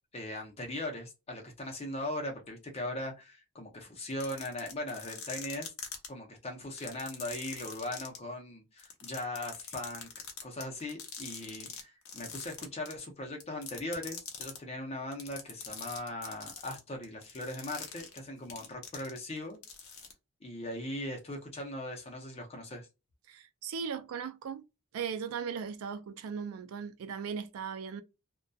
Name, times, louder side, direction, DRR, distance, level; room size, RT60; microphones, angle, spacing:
voice 1, 0.1-5.7 6.1-10.1 10.4-19.6 20.4-22.9, left 1 dB, 30° left, 0.6 m, -39 dB
sound 1, 4.1-6.1 6.7-8.2 8.8-11.8 12.1-13.0 13.4-14.6 15.1-19.4 19.6-20.1, left 8 dB, 75° left, 0.7 m, -43 dB
voice 2, 23.3-24.6 24.9-28.0, right 6 dB, 90° right, 0.4 m, -38 dB
2.6 x 2.2 x 2.2 m
head